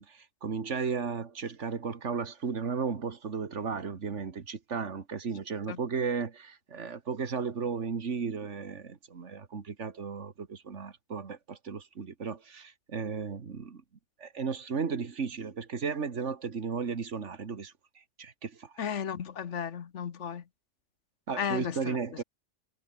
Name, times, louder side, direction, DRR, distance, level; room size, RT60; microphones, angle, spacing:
voice 1, 0.0-13.8 14.2-18.8 21.3-22.2, right 5 dB, 85° right, 2.0 m, -35 dB
voice 2, 18.8-20.4 21.4-22.2, left 8 dB, 85° left, 1.4 m, -34 dB
omnidirectional pair, 1.2 m